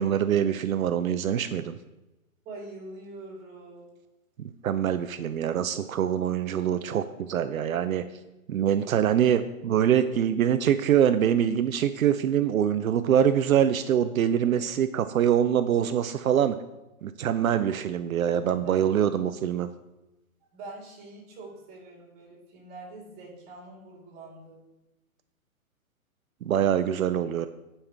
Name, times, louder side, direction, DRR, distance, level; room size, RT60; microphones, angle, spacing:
voice 1, 0.0-1.8 4.6-8.0 8.5-16.6 17.0-19.7 26.4-27.5, right 9 dB, 70° right, 10 dB, 0.6 m, -24 dB
voice 2, 2.5-3.9 14.4-14.7 18.5-18.9 20.5-24.6, right 2 dB, 20° right, -3 dB, 3.5 m, -44 dB
14.5 x 5.6 x 3.4 m, 0.98 s
hypercardioid pair, 145°, 43 cm